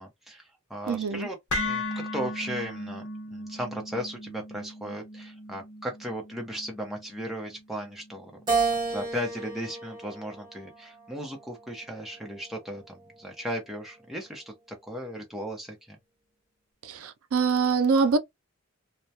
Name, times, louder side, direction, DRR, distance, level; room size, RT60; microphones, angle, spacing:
voice 1, 0.0-1.4 1.6-8.3 8.8-14.5 14.8-16.0, equal, ahead, 0.7 m, -36 dB
voice 2, 0.9-1.3 16.8-18.2, right 5 dB, 75° right, 0.4 m, -24 dB
sound 1, 1.5-9.6, left 2 dB, 75° left, 0.9 m, -37 dB
Keyboard (musical), 8.5-11.0 11.6-12.8, right 4 dB, 20° right, 1.1 m, -31 dB
2.2 x 2.1 x 2.7 m
head